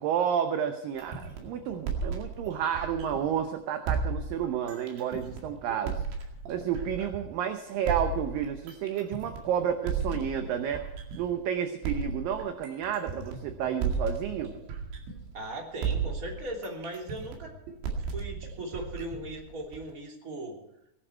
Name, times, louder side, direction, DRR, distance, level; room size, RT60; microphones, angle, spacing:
voice 1, 0.0-6.0 6.5-10.8 11.2-14.5, right 8 dB, 75° right, 7 dB, 2.2 m, -31 dB
sound 1, 1.0-3.4 3.9-7.4 7.9-11.4 11.8-15.5 15.8-19.9, right 5 dB, 90° right, 4.5 m, -34 dB
voice 2, 15.3-17.5 18.1-20.6, right 1 dB, 20° right, 0 dB, 2.8 m, -38 dB
19.5 x 11.5 x 4.5 m, 0.80 s
omnidirectional pair, 5.0 m